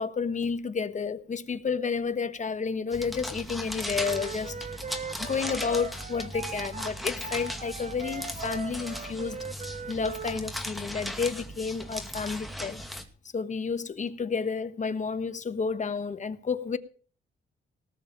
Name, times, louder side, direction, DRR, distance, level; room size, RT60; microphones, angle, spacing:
voice 1, 0.0-4.6 5.2-9.4 9.9-12.8 13.3-16.8, left 5 dB, 40° left, 1.2 m, -31 dB
sound 1, 2.9-13.0, equal, ahead, 2.1 m, -37 dB
Wind instrument woodwind instrument, 4.0-10.4, right 5 dB, 40° right, 0.9 m, -40 dB
19.0 x 7.2 x 6.6 m
cardioid pair, 115°, 19 cm